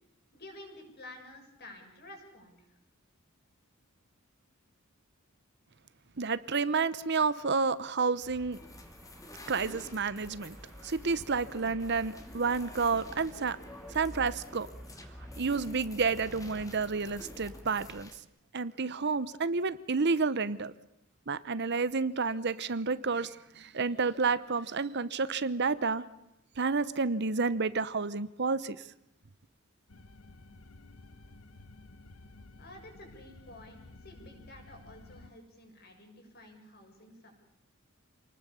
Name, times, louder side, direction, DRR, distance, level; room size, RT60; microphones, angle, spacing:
voice 1, 0.3-2.8 32.6-37.4, left 1 dB, 45° left, 3 dB, 6.9 m, -51 dB
voice 2, 6.2-8.6 9.5-10.6 10.8-13.6 13.9-14.7 15.4-18.1 18.5-20.7 21.3-26.0 26.6-28.8, right 4 dB, 50° right, 15 dB, 0.9 m, -30 dB
Traffic noise roadway noise, 8.2-18.0, equal, 5° right, 1.4 m, -50 dB
sound 1, 8.5-18.2, left 1 dB, 15° left, 2.4 m, -51 dB
sound 2, 29.9-35.3, left 2 dB, 80° left, 1.3 m, -53 dB
28.0 x 19.5 x 7.1 m, 0.80 s
head